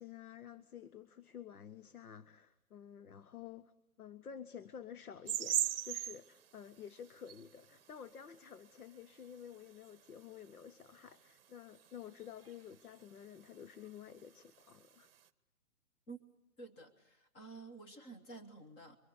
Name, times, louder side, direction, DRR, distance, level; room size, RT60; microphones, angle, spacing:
voice 1, 0.0-3.7 4.0-15.1, left 8 dB, 80° left, 16 dB, 1.3 m, -51 dB
sound 1, 5.3-10.6 10.9-15.2, right 10 dB, 40° right, 1.0 m, -40 dB
voice 2, 16.6-19.0, right 3 dB, 15° left, 5 dB, 1.4 m, -51 dB
26.0 x 24.5 x 8.1 m, 0.83 s
hypercardioid pair, 160°, 43 cm